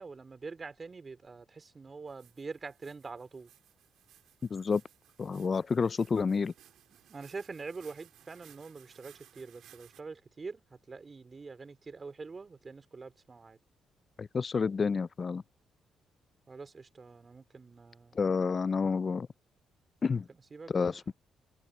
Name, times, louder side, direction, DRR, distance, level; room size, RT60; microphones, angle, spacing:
voice 1, 0.0-3.5 7.1-10.6 10.9-13.6 16.5-18.2 20.5-21.1, right 4 dB, 30° right, 4.1 m, -45 dB
sound 1, 2.1-10.0, right 11 dB, 80° right, 3.4 m, -60 dB
voice 2, 4.5-4.8 5.2-6.5 14.2-15.4 18.1-19.3 20.0-20.3 20.7-21.1, left 5 dB, 40° left, 0.3 m, -29 dB
cardioid pair, 90°, 0 cm